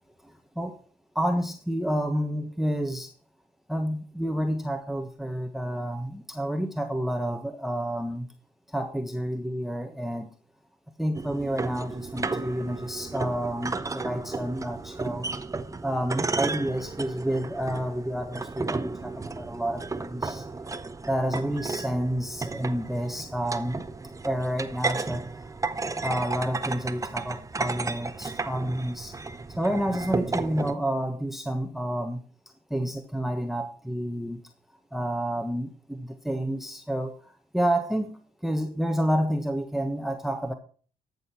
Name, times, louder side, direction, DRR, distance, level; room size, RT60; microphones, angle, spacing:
voice 1, 0.2-0.8 1.1-3.1 3.7-8.3 8.7-10.3 11.0-15.3 15.8-20.5 21.1-23.9 24.2-25.4 26.0-29.1 29.5-32.2 32.7-34.4 34.9-40.5, equal, ahead, 6 dB, 1.3 m, -29 dB
sound 1, 11.1-30.7, right 3 dB, 20° right, 0.8 m, -33 dB
13.5 x 6.7 x 4.4 m, 0.42 s
supercardioid pair, 70°, 17 cm